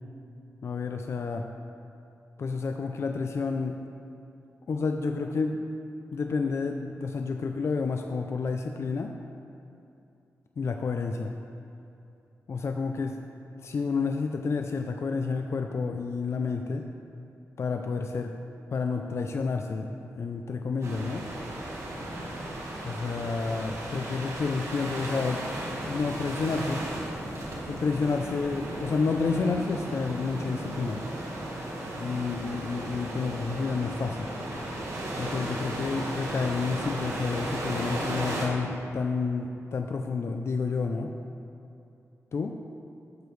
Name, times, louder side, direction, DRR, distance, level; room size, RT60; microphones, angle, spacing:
voice 1, 0.6-1.5 2.4-3.8 4.7-5.6 6.1-9.1 10.6-11.3 12.5-13.2 13.6-16.9 17.6-18.3 18.7-21.3 22.9-26.8 27.6-31.0 32.0-34.3 35.2-41.1 42.3-42.6, left 4 dB, 55° left, 4 dB, 0.4 m, -30 dB
sound 1, 20.8-38.5, right 1 dB, 60° right, 1.6 m, -35 dB
12.5 x 6.9 x 3.2 m, 2.7 s
wide cardioid pair, 100°, 6 cm